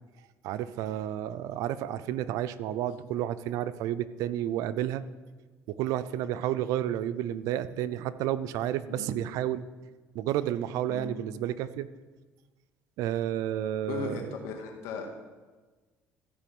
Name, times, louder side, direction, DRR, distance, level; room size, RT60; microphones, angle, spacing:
voice 1, 0.4-5.0 5.8-9.6 10.1-11.9 13.0-14.3, right 12 dB, 75° right, 14 dB, 0.6 m, -31 dB
voice 2, 8.9-9.2 10.9-11.2 13.9-15.1, left 5 dB, 85° left, 3 dB, 1.9 m, -37 dB
14.0 x 5.0 x 7.8 m, 1.3 s
cardioid pair, 100°, 6 cm